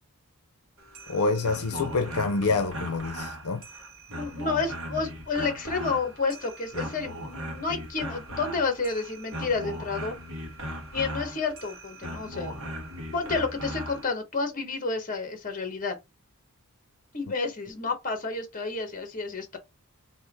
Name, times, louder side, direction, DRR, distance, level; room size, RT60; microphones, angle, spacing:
sound 1, 0.8-14.1, equal, 65° right, 1.4 m, -38 dB
voice 1, 1.1-3.6, left 3 dB, 80° left, 0.6 m, -27 dB
voice 2, 4.1-10.1 10.9-12.7 13.1-16.0 17.1-19.6, left 4 dB, 35° left, 1.2 m, -30 dB
3.5 x 2.9 x 4.5 m
head